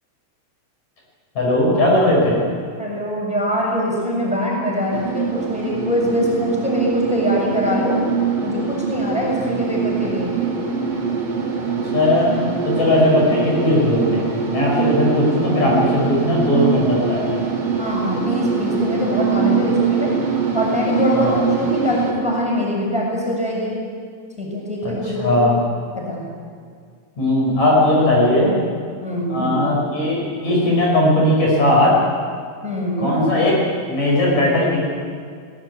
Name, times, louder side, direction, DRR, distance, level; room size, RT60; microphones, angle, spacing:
voice 1, 1.3-2.4 9.4-9.6 11.7-17.4 21.1-21.4 24.8-25.5 27.2-28.6 29.3-32.0 33.0-33.5 33.9-34.8, left 1 dB, 50° left, -3 dB, 6.7 m, -18 dB
voice 2, 2.8-8.0 8.4-10.4 17.8-20.2 20.5-23.7 24.4-25.3 25.9-26.3 29.0-29.6 32.6-33.2, equal, ahead, -3 dB, 6.7 m, -23 dB
sound 1, 4.9-22.1, right 5 dB, 45° right, 4.6 m, -23 dB
23.0 x 19.0 x 9.6 m, 2.1 s
omnidirectional pair, 4.2 m